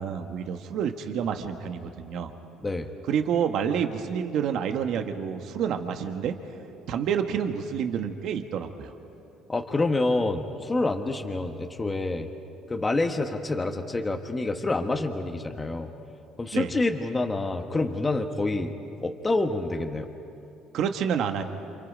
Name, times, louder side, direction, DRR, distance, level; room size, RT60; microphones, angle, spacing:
voice 1, 0.0-2.3 3.1-6.4 6.9-8.9 16.5-16.7 20.7-21.4, right 8 dB, 65° right, 6 dB, 1.4 m, -28 dB
voice 2, 2.6-2.9 9.5-12.3 12.7-15.9 16.4-18.7 19.0-20.1, left 2 dB, 20° left, 4 dB, 1.3 m, -27 dB
28.5 x 27.0 x 5.1 m, 2.7 s
cardioid pair, 105°, 0 cm